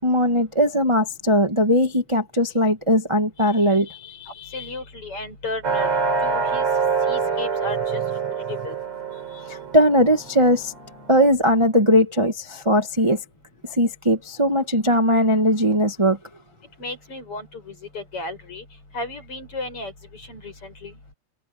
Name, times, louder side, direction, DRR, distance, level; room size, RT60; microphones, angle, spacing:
voice 1, 0.0-4.7 9.5-10.7 11.1-13.2 13.7-16.2, equal, 20° right, 0.7 m, -19 dB
voice 2, 4.5-5.9 6.2-6.7 7.1-8.8 16.8-18.6 18.9-19.9 20.2-20.9, left 2 dB, 40° left, 8.8 m, -34 dB
sound 1, 5.6-11.3, right 5 dB, 55° right, 4.7 m, -26 dB
omnidirectional pair, 3.8 m